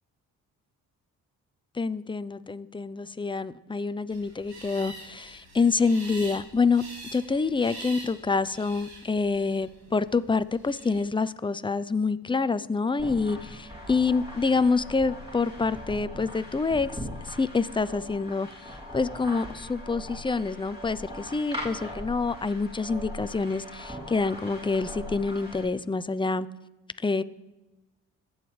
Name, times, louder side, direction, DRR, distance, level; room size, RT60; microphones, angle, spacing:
voice 1, 1.7-6.8 7.1-16.9 17.3-26.5 27.0-27.2, left 4 dB, 15° left, 14 dB, 0.6 m, -27 dB
sound 1, 4.1-11.0, right 2 dB, 75° right, 2.8 m, -45 dB
sound 2, 13.0-25.6, equal, 15° right, 3.6 m, -40 dB
22.5 x 8.9 x 3.3 m, 1.1 s
hypercardioid pair, 55°, 38 cm